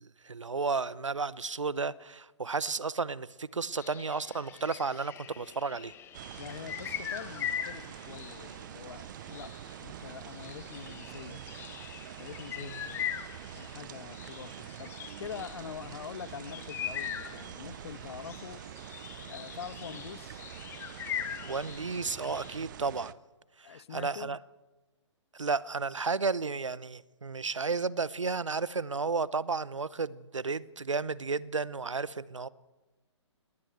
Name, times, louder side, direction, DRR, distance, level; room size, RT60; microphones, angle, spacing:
voice 1, 0.0-5.9 12.6-12.8 21.4-23.1 23.6-24.4 25.3-32.5, right 4 dB, 85° right, 0.8 m, -33 dB
sound 1, 3.7-22.6, left 9 dB, 15° left, 1.0 m, -42 dB
sound 2, 6.1-23.1, right 12 dB, 40° right, 0.7 m, -45 dB
voice 2, 6.4-9.5 9.8-11.4 12.2-13.1 13.5-18.6 19.2-20.5 23.6-24.4, left 8 dB, 60° left, 0.8 m, -45 dB
19.5 x 19.0 x 7.8 m
figure-of-eight pair, 130°, 15 cm